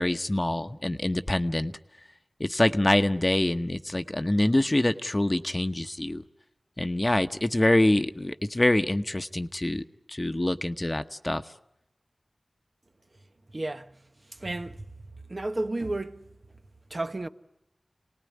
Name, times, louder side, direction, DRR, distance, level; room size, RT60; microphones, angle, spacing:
voice 1, 0.0-1.7 2.4-6.2 6.8-9.8 10.1-11.4, left 1 dB, 30° left, 0.9 m, -25 dB
voice 2, 13.5-14.0 14.3-14.9 15.3-16.3 16.9-17.3, right 2 dB, 45° right, 1.0 m, -32 dB
26.5 x 19.5 x 9.5 m
wide cardioid pair, 45°, 0 cm